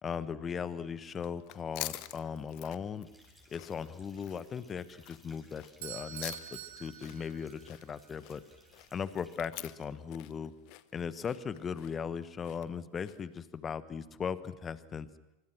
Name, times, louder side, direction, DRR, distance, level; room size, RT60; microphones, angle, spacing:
voice 1, 0.0-3.1 3.5-8.4 8.9-10.5 10.9-15.1, left 6 dB, 25° left, 14 dB, 1.3 m, -38 dB
sound 1, 1.1-13.4, left 20 dB, 50° left, 0.9 m, -47 dB
sound 2, 3.0-9.4, equal, ahead, 6.6 m, -62 dB
Bell / Doorbell, 5.8-7.9, right 11 dB, 65° right, 2.4 m, -45 dB
25.0 x 24.5 x 6.2 m, 1.0 s
figure-of-eight pair, 85°, 0 cm